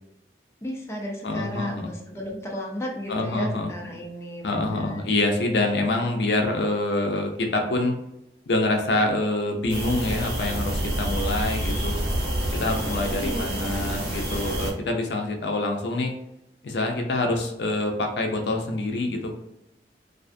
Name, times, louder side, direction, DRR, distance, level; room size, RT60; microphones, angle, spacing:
voice 1, 0.6-5.0 13.0-14.1, equal, 15° left, -2 dB, 0.4 m, -34 dB
voice 2, 1.2-1.9 3.1-3.7 4.4-8.0 8.5-12.0 12.5-16.1 16.6-19.4, left 2 dB, 75° left, 3 dB, 0.5 m, -26 dB
sound 1, 9.7-14.7, right 1 dB, 65° right, 1.2 m, -28 dB
2.4 x 2.3 x 2.5 m, 0.86 s
head